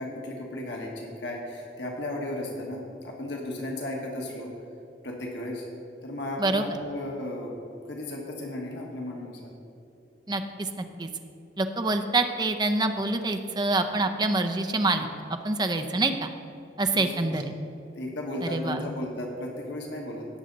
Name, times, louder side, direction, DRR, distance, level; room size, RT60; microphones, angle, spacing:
voice 1, 0.0-4.5 5.0-5.6 6.0-7.6 7.9-9.5 16.9-17.3 17.9-20.3, left 1 dB, 80° left, 0 dB, 1.5 m, -35 dB
voice 2, 10.3-11.1 11.6-15.1 15.4-16.3 16.8-17.4 18.4-18.8, right 2 dB, 25° right, 7 dB, 0.6 m, -26 dB
17.5 x 6.6 x 4.0 m, 2.8 s
head